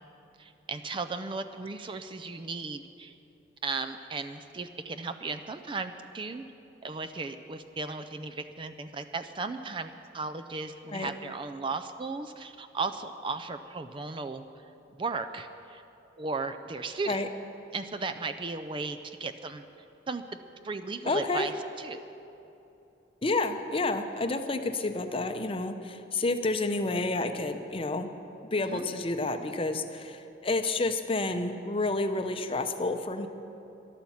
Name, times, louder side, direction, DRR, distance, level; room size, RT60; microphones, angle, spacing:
voice 1, 0.4-3.2 3.6-6.4 6.8-14.4 14.9-15.8 16.2-17.2 17.7-19.6 20.1-20.2 20.6-21.5 21.8-22.0 28.6-28.8, right 4 dB, 25° right, 8 dB, 0.4 m, -36 dB
voice 2, 21.1-21.5 23.2-28.1 28.5-33.3, left 2 dB, 30° left, 7 dB, 0.7 m, -30 dB
13.0 x 12.0 x 7.2 m, 2.9 s
head